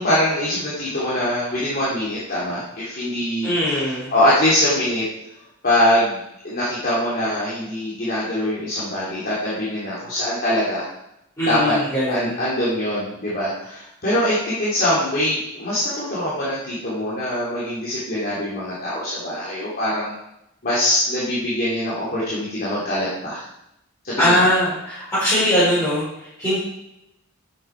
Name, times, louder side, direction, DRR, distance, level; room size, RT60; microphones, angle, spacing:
voice 1, 0.0-5.1 5.6-6.2 6.4-10.8 11.4-11.8 12.1-20.1 20.6-23.4 24.0-24.5, left 1 dB, 45° left, -9 dB, 2.9 m, -23 dB
voice 2, 3.4-4.1 11.4-12.3 24.2-26.0 26.4-26.6, equal, 15° left, -11 dB, 4.8 m, -20 dB
10.5 x 8.9 x 4.6 m, 0.83 s
head